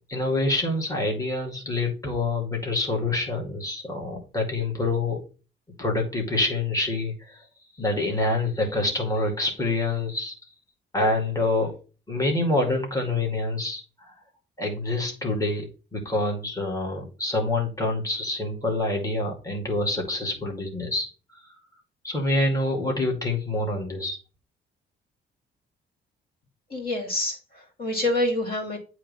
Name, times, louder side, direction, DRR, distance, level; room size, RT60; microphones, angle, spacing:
voice 1, 0.1-5.2 5.8-7.4 7.8-10.3 10.9-11.7 12.1-14.1 14.6-15.7 15.9-21.4 22.0-24.2, left 2 dB, 15° left, -1 dB, 2.2 m, -26 dB
voice 2, 26.7-28.8, left 1 dB, 50° left, 2 dB, 2.9 m, -27 dB
8.6 x 3.2 x 5.4 m, 0.35 s
cardioid pair, 90°, 20 cm